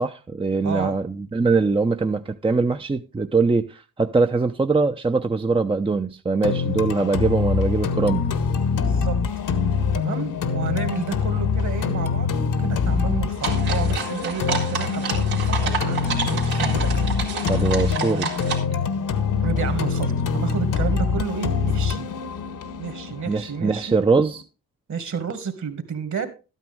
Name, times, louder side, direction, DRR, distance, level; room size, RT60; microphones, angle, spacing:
voice 1, 0.0-8.3 17.4-18.3 23.3-24.4, right 4 dB, 15° right, 0.7 m, -22 dB
voice 2, 0.6-1.0 8.8-9.2 9.9-17.0 19.4-22.1 22.8-24.0 24.9-26.3, right 6 dB, 50° right, 2.1 m, -31 dB
sound 1, 6.4-24.4, left 6 dB, 60° left, 1.3 m, -24 dB
sound 2, 13.4-18.6, right 5 dB, 85° right, 2.7 m, -29 dB
12.5 x 9.2 x 3.6 m
hypercardioid pair, 50°, 36 cm